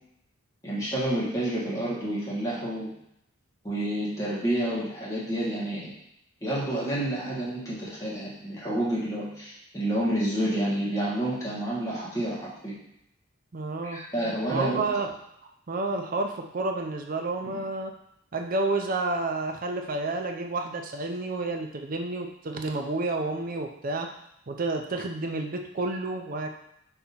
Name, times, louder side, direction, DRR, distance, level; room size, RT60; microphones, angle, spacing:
voice 1, 0.6-2.9 3.6-5.8 6.4-12.7 13.8-14.8 17.4-17.6, right 1 dB, 15° left, -8 dB, 1.3 m, -29 dB
voice 2, 13.5-14.0 14.5-15.1 15.7-17.9 18.3-24.1 24.5-26.5, right 2 dB, 45° right, 4 dB, 0.5 m, -30 dB
3.8 x 2.9 x 4.1 m, 0.79 s
head